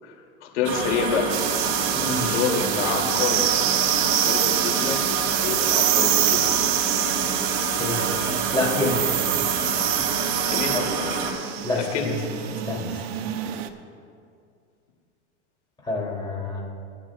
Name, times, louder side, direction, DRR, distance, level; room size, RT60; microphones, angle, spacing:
voice 1, 0.4-1.4 2.2-3.5 4.0-5.1 5.4-6.6 10.5-10.8 11.7-12.1, left 6 dB, 75° left, 0 dB, 3.0 m, -27 dB
Toilet Flush far, 0.6-11.3, right 4 dB, 35° right, 2.0 m, -28 dB
sound 1, 1.3-13.7, right 12 dB, 60° right, 0.8 m, -26 dB
voice 2, 1.9-2.2 7.8-8.0 8.5-9.0 10.7-10.8 11.6-12.1 12.6-13.0 15.8-16.6, left 2 dB, 10° left, -4 dB, 3.2 m, -27 dB
20.0 x 10.0 x 2.5 m, 2.3 s
supercardioid pair, 135°, 35 cm